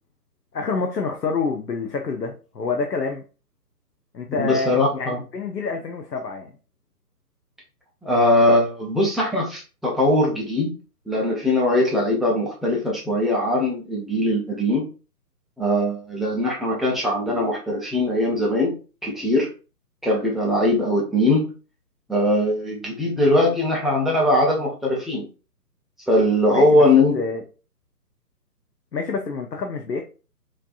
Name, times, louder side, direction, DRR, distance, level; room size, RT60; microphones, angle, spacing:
voice 1, 0.5-3.2 4.1-6.6 26.5-26.8 27.1-27.4 28.9-30.0, left 4 dB, 90° left, 3 dB, 0.7 m, -27 dB
voice 2, 4.4-5.2 8.0-10.7 11.1-14.9 15.6-18.8 19.0-19.5 20.0-21.5 22.1-25.3 26.1-27.2, left 1 dB, ahead, -4 dB, 0.3 m, -20 dB
3.2 x 2.7 x 2.3 m, 0.34 s
figure-of-eight pair, 140°, 48 cm